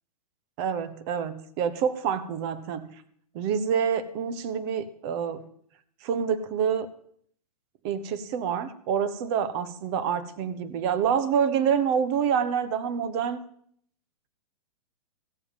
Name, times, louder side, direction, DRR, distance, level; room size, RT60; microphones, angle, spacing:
voice 1, 0.6-2.9 3.3-5.5 6.0-6.9 7.8-13.4, right 7 dB, 45° right, 13 dB, 1.3 m, -27 dB
15.5 x 7.3 x 7.3 m, 0.63 s
hypercardioid pair, 120°, 19 cm